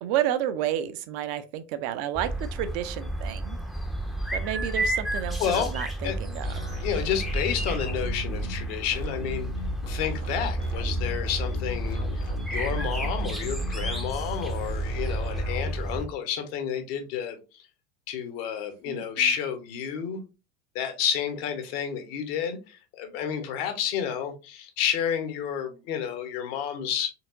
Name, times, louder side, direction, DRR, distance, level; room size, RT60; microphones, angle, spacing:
voice 1, 0.0-3.6 4.3-6.5 18.9-19.0, right 11 dB, 45° right, 0.6 m, -30 dB
sound 1, 2.1-16.1, right 1 dB, ahead, 0.6 m, -31 dB
voice 2, 5.4-5.7 6.0-6.2 6.8-9.5 9.9-12.2 12.5-17.7 18.1-20.2 20.7-27.1, left 8 dB, 55° left, 1.1 m, -30 dB
sound 2, 6.4-15.7, equal, 85° left, 1.3 m, -37 dB
4.5 x 3.5 x 2.6 m
figure-of-eight pair, 80°, 35 cm